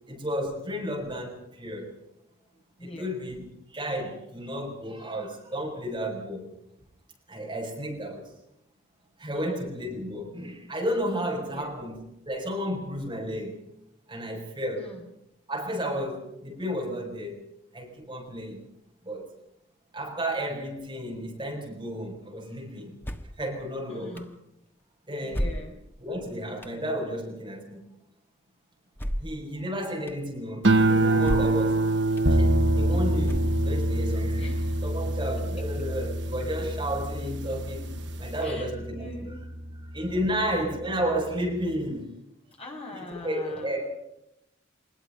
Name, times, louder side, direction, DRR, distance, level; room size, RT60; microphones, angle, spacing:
voice 1, 0.1-2.0 2.8-3.5 3.7-6.4 7.3-8.3 9.2-13.6 14.1-14.9 15.5-17.4 17.7-18.6 19.0-19.3 19.9-23.0 23.4-24.2 25.1-25.5 26.0-27.8 29.2-32.0 32.3-34.4 34.8-37.9 38.2-39.3 39.9-42.1 42.9-43.9, equal, 20° right, -1 dB, 6.2 m, -32 dB
voice 2, 2.8-3.2 9.3-9.6 11.5-11.8 14.7-15.0 23.9-24.3 25.2-25.8 34.4-34.8 35.6-35.7 38.4-39.8 42.6-43.9, left 1 dB, 30° left, 0 dB, 6.1 m, -43 dB
sound 1, 23.0-23.4 24.2-24.3 25.3-26.0 26.6-26.8 29.0-29.4 30.1-30.2 31.2-31.7 32.2-32.3 33.2-33.8, equal, 10° left, 1.3 m, -32 dB
sound 2, 30.6-37.2 37.6-38.1, right 3 dB, 55° right, 0.9 m, -26 dB
sound 3, 32.2-41.7, equal, 90° right, 3.8 m, -29 dB
24.5 x 21.5 x 5.5 m, 0.81 s
head